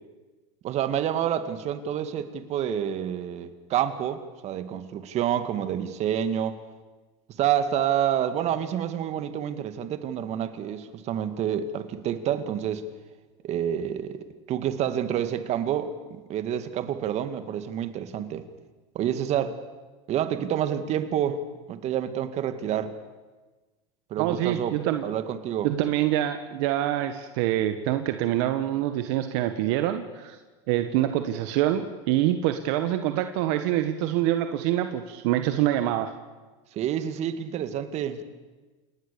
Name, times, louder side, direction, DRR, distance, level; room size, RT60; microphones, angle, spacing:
voice 1, 0.6-6.6 7.4-12.9 13.4-18.5 18.9-19.6 20.1-21.4 21.7-22.9 24.1-24.7 25.0-25.7 36.7-38.2, right 9 dB, 45° right, 10 dB, 2.1 m, -28 dB
voice 2, 24.2-25.1 25.6-30.4 30.7-36.1, right 13 dB, 65° right, 8 dB, 1.5 m, -25 dB
28.5 x 19.5 x 7.0 m, 1.3 s
supercardioid pair, 105°, 15 cm